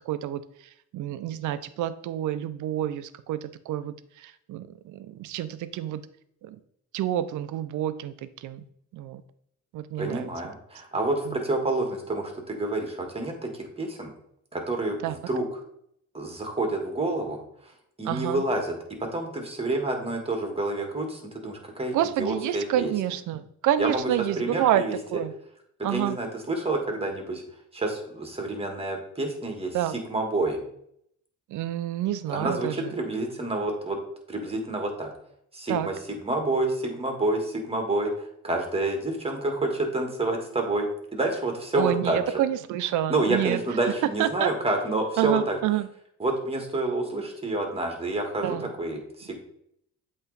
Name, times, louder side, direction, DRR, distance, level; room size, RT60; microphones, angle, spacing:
voice 1, 0.1-0.4 0.9-3.4 3.7-3.9 4.2-6.0 6.4-6.6 6.9-8.1 8.4-8.6 8.9-9.2 9.7-10.3 15.0-15.2 18.0-18.4 21.9-24.8 25.1-25.3 25.8-26.2 29.7-30.0 31.5-32.7 35.7-35.9 41.8-43.6 44.2-44.5 45.2-45.9 48.4-48.7, right 12 dB, 75° right, 14 dB, 0.5 m, -28 dB
voice 2, 10.0-14.1 14.5-15.6 16.1-18.7 19.0-22.9 23.8-24.9 25.8-27.4 27.7-30.6 32.3-34.0 34.3-35.1 35.5-42.4 43.1-45.6 46.2-49.4, right 2 dB, 20° right, 3 dB, 1.6 m, -28 dB
8.0 x 3.1 x 4.0 m, 0.71 s
cardioid pair, 90°, 30 cm